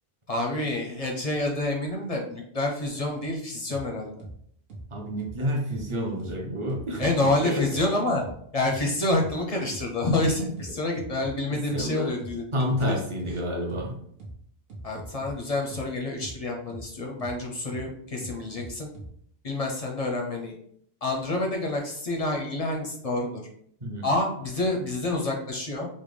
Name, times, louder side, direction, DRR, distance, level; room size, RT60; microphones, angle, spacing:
voice 1, 0.3-4.1 7.0-8.2 8.5-12.4 12.9-13.0 14.8-18.9 19.4-20.5 21.0-23.4 24.0-25.9, left 2 dB, 45° left, 0 dB, 0.5 m, -28 dB
sound 1, 3.7-3.8 4.2-4.3 4.7-4.8 5.2-5.3 5.7-5.8 6.2-6.3 6.7-7.3 7.7-7.8 8.2-8.3 8.7-8.8 9.2-9.3 9.7-9.8 10.2-11.3 11.7-11.8 12.2-12.3 12.7-12.8 13.2-13.3 13.7-13.8 14.2-14.3 14.7-15.3 15.7-15.8 16.2-16.3 16.7-16.8 17.2-17.3 17.7-17.8 18.2-19.1, right 2 dB, 65° right, 1.1 m, -41 dB
voice 2, 4.9-7.1 7.4-7.9 11.5-12.2 12.5-14.0 23.8-24.1, equal, 35° right, 0 dB, 0.5 m, -29 dB
3.7 x 2.1 x 3.2 m, 0.66 s
omnidirectional pair, 1.1 m